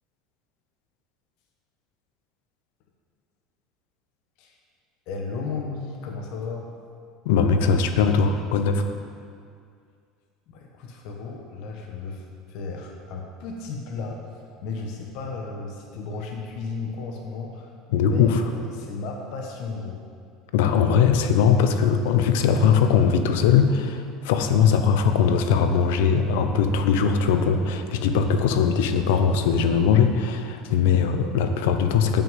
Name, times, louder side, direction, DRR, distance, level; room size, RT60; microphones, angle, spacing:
voice 1, 5.1-6.7 10.5-14.2 14.6-20.0, left 4 dB, 65° left, 1 dB, 1.2 m, -34 dB
voice 2, 7.2-8.8 17.9-18.4 20.5-32.2, left 6 dB, 85° left, 7 dB, 0.8 m, -20 dB
8.7 x 6.2 x 7.4 m, 2.3 s
supercardioid pair, 135°, 0 cm